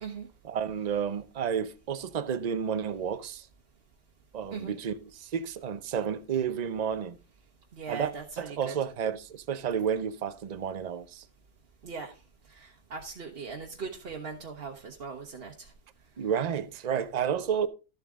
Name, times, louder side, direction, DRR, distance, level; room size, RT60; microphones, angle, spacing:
voice 1, 0.4-3.5 4.3-7.2 7.9-8.1 8.4-11.2 16.2-17.7, right 8 dB, 60° right, 0.4 m, -31 dB
voice 2, 7.7-8.8 11.8-12.1 12.5-15.7, right 5 dB, 45° right, 1.1 m, -40 dB
12.5 x 7.4 x 3.6 m
omnidirectional pair, 1.6 m